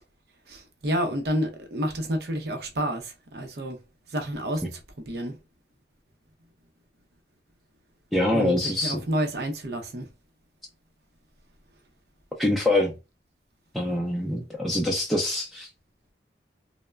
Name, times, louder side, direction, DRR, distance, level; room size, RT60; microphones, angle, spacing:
voice 1, 0.5-3.8 4.1-5.4 8.3-10.1, equal, 65° right, 0.6 m, -30 dB
voice 2, 8.1-9.0 12.4-12.9 13.7-15.7, left 1 dB, ahead, 0.4 m, -24 dB
3.2 x 2.1 x 2.2 m
head